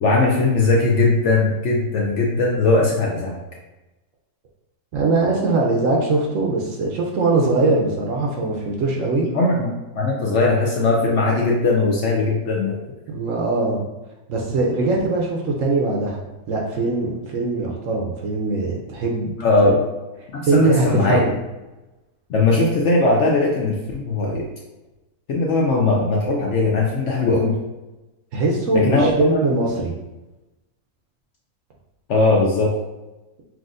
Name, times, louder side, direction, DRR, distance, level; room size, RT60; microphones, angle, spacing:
voice 1, 0.0-3.4 9.3-9.7 10.0-12.7 19.4-19.7 20.3-21.2 22.3-24.5 25.3-27.6 28.7-29.4 32.1-32.7, left 3 dB, 60° left, -2 dB, 0.8 m, -19 dB
voice 2, 4.9-9.3 13.1-13.9 14.3-16.2 16.5-19.3 19.6-19.7 20.5-21.3 28.3-29.9, right 3 dB, 65° right, -1 dB, 0.9 m, -21 dB
6.0 x 2.5 x 2.5 m, 1.1 s
omnidirectional pair, 1.7 m